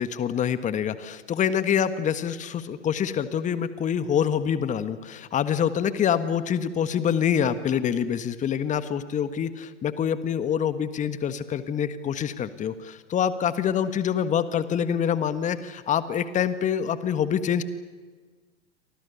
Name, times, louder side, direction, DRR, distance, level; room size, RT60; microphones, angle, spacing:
voice 1, 0.0-17.6, left 8 dB, 20° left, 12 dB, 1.5 m, -26 dB
29.5 x 24.5 x 7.1 m, 1.4 s
figure-of-eight pair, 105°, 34 cm